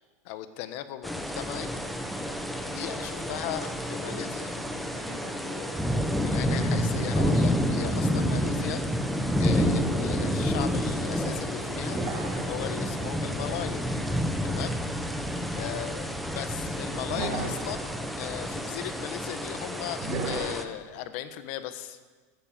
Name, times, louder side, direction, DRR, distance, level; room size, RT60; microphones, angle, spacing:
voice 1, 0.2-1.7 2.7-4.5 6.2-8.9 9.4-13.8 14.4-15.1 15.5-16.1 16.3-17.9 18.2-22.0, left 12 dB, 50° left, 11 dB, 1.2 m, -37 dB
sound 1, 1.0-20.6, equal, ahead, 1.0 m, -29 dB
voice 2, 3.1-6.1 15.6-15.9, left 2 dB, 35° left, -4 dB, 3.3 m, -46 dB
sound 2, 11.9-12.8 15.2-15.4 17.1-17.8 20.0-20.6, right 3 dB, 30° right, 3.8 m, -33 dB
15.0 x 12.5 x 7.6 m, 1.4 s
supercardioid pair, 160°, 9 cm